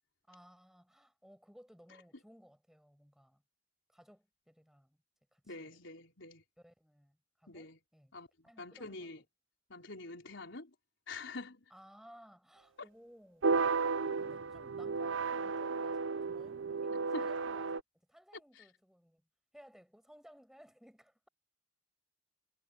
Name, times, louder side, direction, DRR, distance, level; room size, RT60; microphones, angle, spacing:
voice 1, 0.3-3.4 3.9-5.0 5.3-5.8 6.6-8.2 8.4-9.2 11.7-13.5 13.8-17.8 18.1-19.2 19.5-21.3, equal, ahead, 7.9 m, -60 dB
voice 2, 5.4-6.4 7.5-7.8 8.1-9.2 9.7-10.7 11.1-11.7 12.8-12.9 17.1-17.3 18.6-18.7, left 3 dB, 65° left, 4.5 m, -46 dB
sound 1, 13.4-17.8, right 4 dB, 65° right, 0.6 m, -33 dB
head